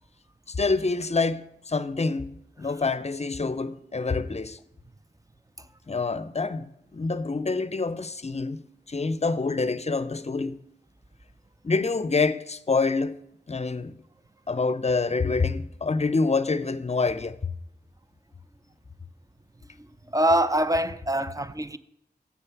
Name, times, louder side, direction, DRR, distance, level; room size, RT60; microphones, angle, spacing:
voice 1, 0.5-4.6 5.9-10.6 11.6-13.2 13.5-13.9 14.5-17.4, left 4 dB, 40° left, 0.5 m, -27 dB
voice 2, 19.8-21.8, right 1 dB, 20° right, 0.4 m, -24 dB
7.6 x 6.7 x 5.8 m
wide cardioid pair, 55°, 18 cm